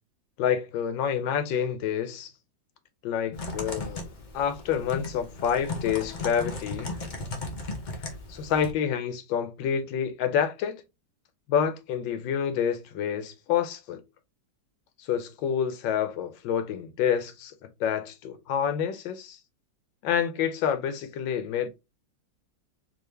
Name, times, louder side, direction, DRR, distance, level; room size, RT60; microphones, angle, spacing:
voice 1, 0.4-2.3 3.0-4.1 4.3-6.9 8.3-10.8 11.5-14.0 15.0-17.5 17.8-19.4 20.0-21.7, left 8 dB, 80° left, 1.3 m, -28 dB
Typing, 3.3-8.7, left 2 dB, 60° left, 0.5 m, -36 dB
3.7 x 2.8 x 3.1 m
omnidirectional pair, 2.1 m